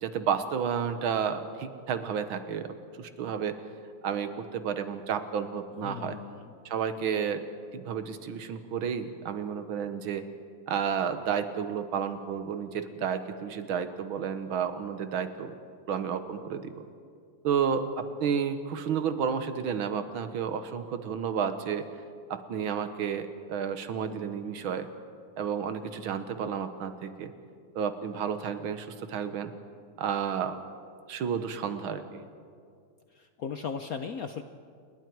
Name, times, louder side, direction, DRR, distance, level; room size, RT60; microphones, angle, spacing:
voice 1, 0.0-3.6 4.0-6.2 6.7-7.4 7.7-10.2 10.7-15.5 15.9-16.8 17.4-21.9 22.3-24.9 25.4-27.3 27.8-29.5 30.0-30.6 31.1-32.3, right 7 dB, 75° right, 10 dB, 1.9 m, -31 dB
voice 2, 5.8-6.6 33.1-34.4, left 6 dB, 65° left, 8 dB, 0.9 m, -37 dB
29.5 x 21.5 x 4.6 m, 2.2 s
omnidirectional pair, 2.3 m